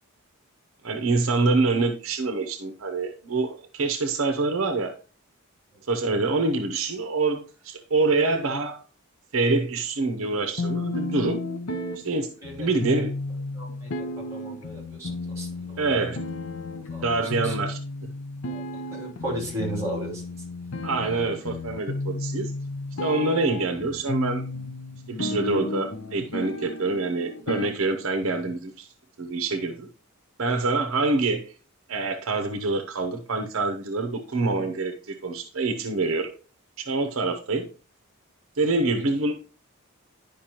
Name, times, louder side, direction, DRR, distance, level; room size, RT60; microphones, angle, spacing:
voice 1, 0.8-4.9 5.9-8.8 9.3-11.4 12.0-12.3 12.6-13.1 15.8-16.2 17.0-18.1 20.8-22.5 23.0-24.4 25.1-28.9 29.2-29.9 30.4-31.5 31.9-36.3 36.8-37.7 38.6-39.4, right 3 dB, 65° right, 0.7 m, -26 dB
sound 1, 10.6-28.6, left 2 dB, 65° left, 0.6 m, -33 dB
voice 2, 13.5-15.8 16.9-17.1 17.4-17.5 18.5-18.6 18.9-20.2 39.0-39.1, right 1 dB, 15° right, 2.7 m, -35 dB
10.5 x 5.1 x 2.9 m
head